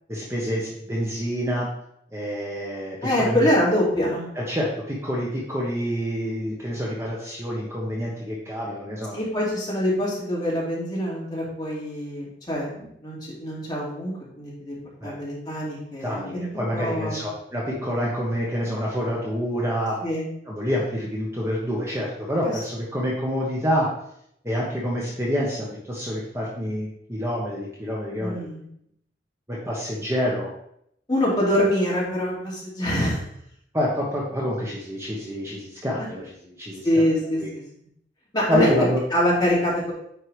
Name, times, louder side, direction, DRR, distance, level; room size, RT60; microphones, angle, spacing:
voice 1, 0.1-1.7 2.1-3.5 4.3-9.2 15.0-15.2 16.0-20.0 20.5-23.9 24.4-28.5 29.5-30.5 33.7-37.1 37.4-37.5 38.5-39.0, equal, 15° right, -4 dB, 1.1 m, -27 dB
voice 2, 3.0-4.3 9.1-14.8 15.0-17.2 20.0-20.3 22.4-22.5 28.2-28.6 31.1-33.2 36.8-37.6 38.3-38.7 39.1-39.9, equal, 25° left, -6 dB, 2.5 m, -25 dB
9.3 x 4.7 x 3.3 m, 0.73 s
head